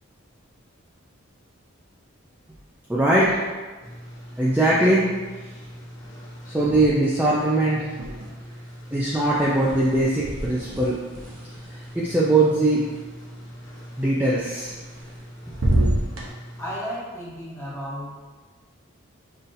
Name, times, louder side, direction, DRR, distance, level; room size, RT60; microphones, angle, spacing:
voice 1, 2.9-3.4 4.4-5.1 5.4-5.5 6.4-7.9 8.9-11.0 11.7-12.8 14.0-14.8, right 2 dB, 10° right, -7 dB, 0.4 m, -21 dB
sound 1, 3.8-16.8, equal, 60° left, 1.1 m, -42 dB
sound 2, 7.9-8.6 8.9-13.0 14.6-15.2 15.5-16.3, right 1 dB, 85° right, 0.8 m, -28 dB
voice 2, 16.6-18.3, equal, 15° left, -7 dB, 1.0 m, -33 dB
5.5 x 2.7 x 2.6 m, 1.3 s
head